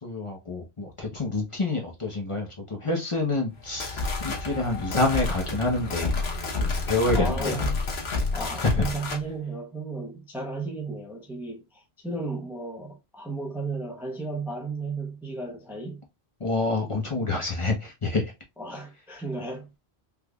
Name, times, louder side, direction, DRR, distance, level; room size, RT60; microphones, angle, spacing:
voice 1, 0.0-6.2 6.6-7.6 8.7-8.8 16.4-18.2, left 2 dB, 35° left, 0.8 m, -27 dB
sound 1, 3.6-9.2, left 3 dB, 80° left, 1.1 m, -29 dB
voice 2, 7.1-7.8 8.3-16.0 17.1-17.2 18.6-19.8, right 3 dB, ahead, 0.6 m, -34 dB
3.5 x 3.1 x 2.3 m
omnidirectional pair, 1.1 m